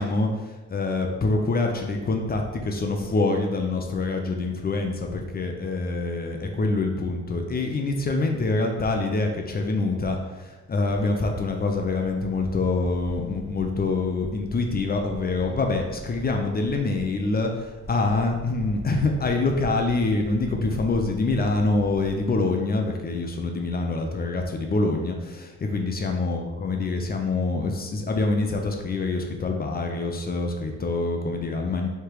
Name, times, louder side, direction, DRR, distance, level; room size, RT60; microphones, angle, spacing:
voice 1, 0.0-31.9, left 3 dB, 30° left, 3 dB, 0.6 m, -25 dB
sound 1, 10.8-22.4, right 1 dB, 45° right, 1.0 m, -42 dB
3.3 x 2.9 x 4.7 m, 1.2 s
cardioid pair, 90°, 30 cm